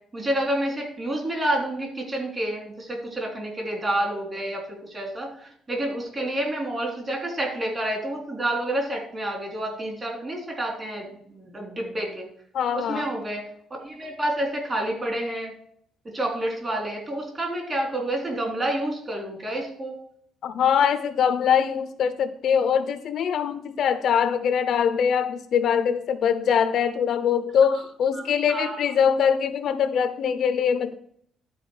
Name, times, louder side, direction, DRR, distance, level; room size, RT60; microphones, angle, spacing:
voice 1, 0.1-12.3 12.7-13.4 13.8-15.5 16.1-19.9 28.2-28.8, right 1 dB, 25° right, 1 dB, 3.6 m, -29 dB
voice 2, 12.5-13.1 20.4-30.9, left 7 dB, 60° left, 12 dB, 0.8 m, -23 dB
11.5 x 5.0 x 6.5 m, 0.64 s
cardioid pair, 130°, 0 cm